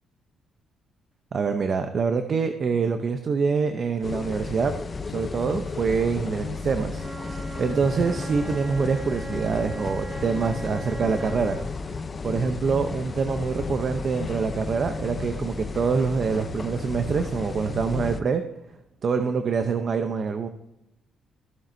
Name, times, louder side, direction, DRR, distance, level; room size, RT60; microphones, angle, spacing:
voice 1, 1.3-4.7 5.0-11.6 12.2-18.4 19.0-20.5, right 5 dB, 50° right, 7 dB, 0.7 m, -25 dB
sound 1, 4.0-18.2, left 4 dB, 35° left, 0.7 m, -33 dB
Wind instrument woodwind instrument, 6.9-11.7, right 3 dB, 20° right, 1.4 m, -39 dB
15.5 x 7.4 x 2.7 m, 0.88 s
cardioid pair, 90°, 0 cm